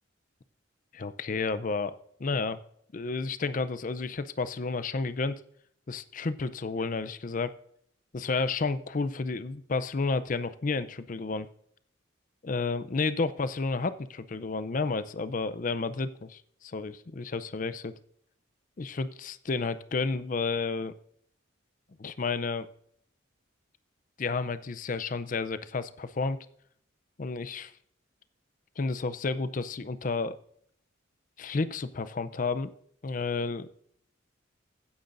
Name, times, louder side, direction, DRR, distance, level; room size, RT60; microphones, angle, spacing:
voice 1, 0.9-1.9 2.2-2.6 2.9-5.4 5.9-7.5 8.1-11.5 12.4-17.9 18.8-20.9 22.0-22.7 24.2-26.4 27.2-27.7 28.8-30.4 31.4-32.7 33.0-33.7, left 4 dB, 40° left, 13 dB, 0.5 m, -31 dB
15.5 x 9.3 x 2.6 m, 0.67 s
head